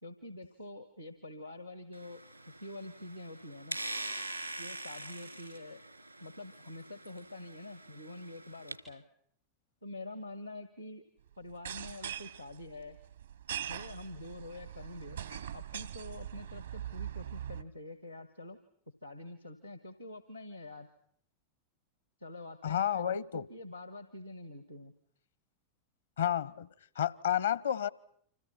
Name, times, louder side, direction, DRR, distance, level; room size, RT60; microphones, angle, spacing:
voice 1, 0.0-3.8 4.6-5.8 6.2-9.0 9.8-11.0 11.4-13.0 13.7-15.2 15.5-18.6 19.0-20.9 22.2-24.9, left 2 dB, 90° left, 11 dB, 1.7 m, -46 dB
sound 1, 1.9-8.8, right 2 dB, 90° right, 3.8 m, -44 dB
sound 2, 11.5-17.6, right 10 dB, 70° right, 1.0 m, -42 dB
voice 2, 22.6-23.5 26.2-26.7 27.0-27.9, left 10 dB, 65° left, 23 dB, 1.0 m, -30 dB
30.0 x 26.5 x 5.8 m, 0.66 s
figure-of-eight pair, 90°, 0 cm